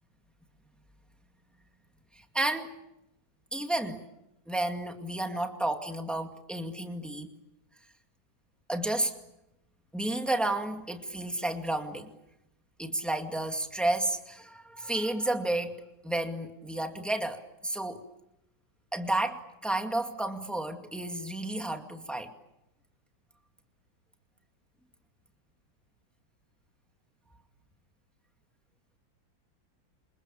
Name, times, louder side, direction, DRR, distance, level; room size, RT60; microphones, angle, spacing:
voice 1, 2.2-2.8 3.5-4.0 4.5-7.3 8.7-9.1 9.9-12.1 12.8-15.8 16.0-18.0 18.9-22.3, right 1 dB, ahead, 4 dB, 2.0 m, -31 dB
29.5 x 26.5 x 7.2 m, 0.90 s
omnidirectional pair, 2.0 m